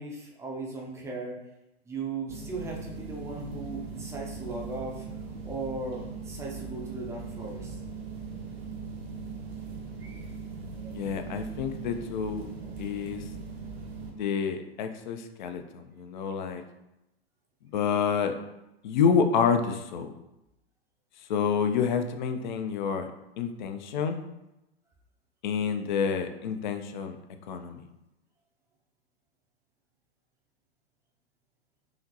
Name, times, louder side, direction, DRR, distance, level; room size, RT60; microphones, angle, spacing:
voice 1, 0.0-1.4 1.8-5.1 5.4-7.8 10.0-10.3, right 3 dB, 10° right, -2 dB, 0.6 m, -37 dB
sound 1, 2.3-14.1, right 5 dB, 70° right, 1.1 m, -40 dB
voice 2, 10.9-12.5 12.8-13.2 14.2-16.6 17.7-18.3 18.8-20.1 21.3-23.1 23.4-24.2 25.4-27.2 27.5-27.8, left 6 dB, 45° left, 7 dB, 0.5 m, -28 dB
4.9 x 2.9 x 2.7 m, 0.93 s
figure-of-eight pair, 105°, 32 cm